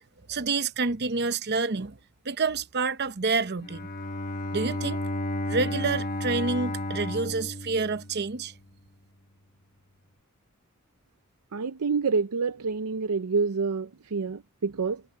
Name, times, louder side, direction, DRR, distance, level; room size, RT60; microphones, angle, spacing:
voice 1, 0.3-2.0 2.2-3.9 4.5-5.0 5.5-8.5, right 4 dB, 50° right, 0.8 m, -28 dB
Bowed string instrument, 3.6-8.6, left 1 dB, 40° left, 1.2 m, -32 dB
voice 2, 11.5-15.0, right 4 dB, 85° right, 0.6 m, -27 dB
head